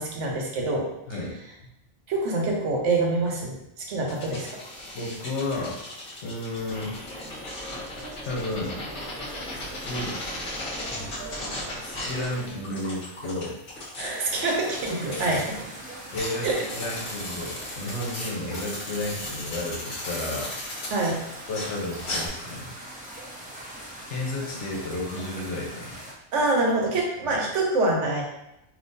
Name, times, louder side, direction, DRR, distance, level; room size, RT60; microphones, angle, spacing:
voice 1, 0.0-0.9 2.1-4.6 14.0-15.7 16.4-16.7 20.9-21.2 26.3-28.2, right 2 dB, 85° right, 0 dB, 1.1 m, -26 dB
sound 1, 4.1-15.6 16.0-22.3, left 1 dB, 50° left, 1.1 m, -37 dB
voice 2, 4.9-5.9 6.2-7.0 8.2-8.8 9.5-10.2 11.8-13.5 15.2-15.4 16.1-16.5 16.7-20.5 21.5-22.7 24.1-25.9, left 2 dB, 75° left, -1 dB, 1.1 m, -32 dB
sound 2, 6.5-12.6, equal, 10° left, 1.0 m, -41 dB
sound 3, 14.3-26.1, equal, 10° right, 0.6 m, -41 dB
3.6 x 2.7 x 2.6 m, 0.86 s
omnidirectional pair, 1.2 m